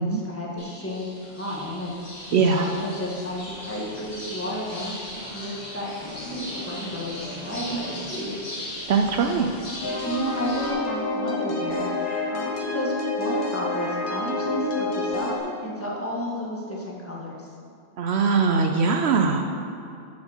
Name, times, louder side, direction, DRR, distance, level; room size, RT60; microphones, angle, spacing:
voice 1, 0.0-5.9 6.2-8.3 9.1-9.3 10.0-17.5, equal, 10° left, -4 dB, 1.6 m, -32 dB
sound 1, 0.6-10.7, left 1 dB, 65° left, 2.3 m, -38 dB
voice 2, 2.3-2.6 7.7-7.8 8.9-9.5 18.0-19.4, right 5 dB, 65° right, 4 dB, 0.8 m, -21 dB
sound 2, 9.8-15.4, left 2 dB, 45° left, 1.2 m, -28 dB
7.2 x 6.2 x 6.6 m, 2.5 s
omnidirectional pair, 1.2 m